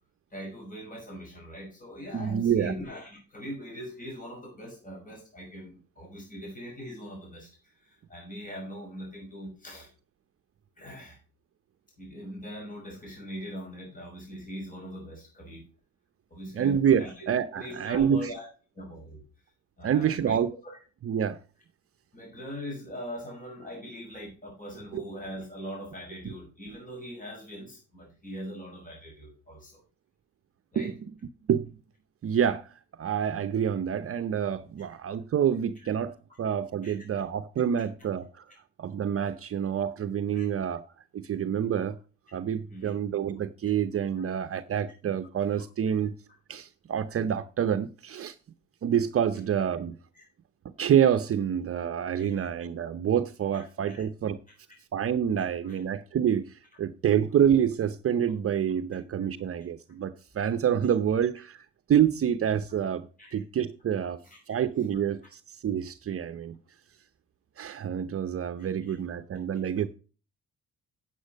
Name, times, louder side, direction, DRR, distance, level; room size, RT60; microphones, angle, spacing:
voice 1, 0.3-9.9 10.8-11.2 12.0-15.6 16.3-17.3 17.5-18.5 18.7-19.2 19.8-20.4 20.6-20.8 22.1-29.8 30.7-30.9 36.8-36.9 40.3-40.5 42.7-42.9 45.9-46.0 50.1-50.2 52.2-52.5 53.5-54.0 55.6-55.8 59.2-59.3 63.2-63.4 64.2-64.4 68.6-69.0, equal, 25° left, 5.7 m, -41 dB
voice 2, 2.1-2.7 16.5-18.3 19.8-20.5 21.0-21.4 24.9-25.0 30.8-30.9 31.5-31.7 32.2-38.5 38.8-40.8 41.1-42.0 42.3-46.1 46.5-48.3 48.8-50.0 50.8-54.4 54.9-64.2 64.5-66.6 67.6-69.9, right 9 dB, 50° right, 0.7 m, -27 dB
9.0 x 8.6 x 5.1 m
cardioid pair, 90°, 30 cm